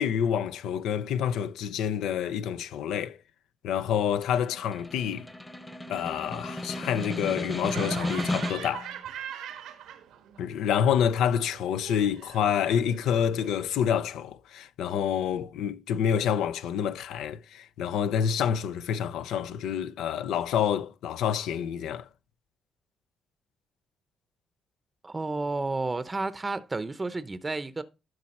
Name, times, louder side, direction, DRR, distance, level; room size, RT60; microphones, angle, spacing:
voice 1, 0.0-3.2 3.6-5.3 5.9-8.9 10.4-22.0, left 8 dB, 85° left, 0.5 m, -28 dB
Snare drum, 3.9-8.9, left 1 dB, 10° left, 0.9 m, -34 dB
Laughter, 7.6-10.4 10.7-13.6, right 9 dB, 90° right, 1.2 m, -42 dB
voice 2, 25.0-27.8, right 3 dB, 20° right, 0.7 m, -31 dB
12.0 x 4.6 x 4.2 m
cardioid pair, 90°, 0 cm